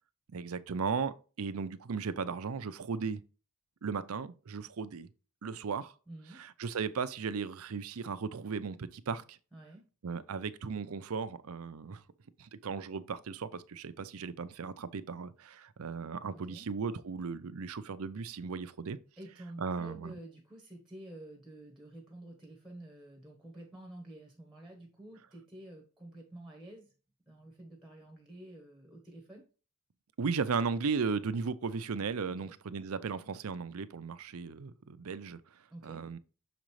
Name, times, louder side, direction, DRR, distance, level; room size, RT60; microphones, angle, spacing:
voice 1, 0.3-3.2 3.8-5.1 5.4-5.9 6.3-9.4 10.0-12.0 12.4-19.0 19.6-20.2 30.2-35.4 35.8-36.2, right 5 dB, 80° right, 0.5 m, -36 dB
voice 2, 6.1-6.4 9.5-9.9 16.3-16.7 19.2-26.9 27.3-29.4 32.3-32.5 35.7-36.0, right 1 dB, ahead, 1.2 m, -50 dB
6.5 x 5.1 x 3.1 m
head